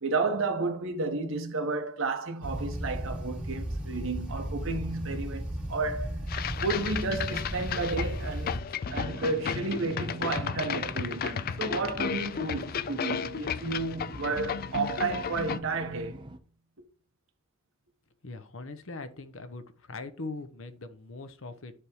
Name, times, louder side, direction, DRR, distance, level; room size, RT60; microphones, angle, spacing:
voice 1, 0.0-6.1 6.6-8.6 8.9-16.3, right 3 dB, 65° right, 1.3 m, -32 dB
sound 1, 2.4-8.6, right 1 dB, 5° right, 2.1 m, -35 dB
sound 2, 6.3-15.6, left 7 dB, 45° left, 0.4 m, -34 dB
sound 3, 8.9-16.4, right 1 dB, 25° right, 0.7 m, -44 dB
voice 2, 18.2-21.7, left 3 dB, 70° left, 0.9 m, -41 dB
10.0 x 3.6 x 4.6 m
head